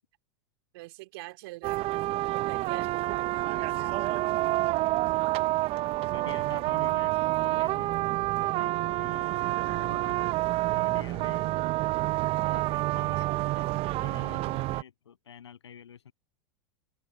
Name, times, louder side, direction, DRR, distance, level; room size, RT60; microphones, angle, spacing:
voice 1, 0.7-1.9 2.5-4.3, right 22 dB, 60° right, 3.2 m, -45 dB
sound 1, 1.6-14.8, right 18 dB, 45° right, 1.0 m, -28 dB
voice 2, 6.1-10.2 10.7-11.7 12.5-13.3 13.5-16.1, left 8 dB, 80° left, 7.7 m, -48 dB
hypercardioid pair, 90°, 14 cm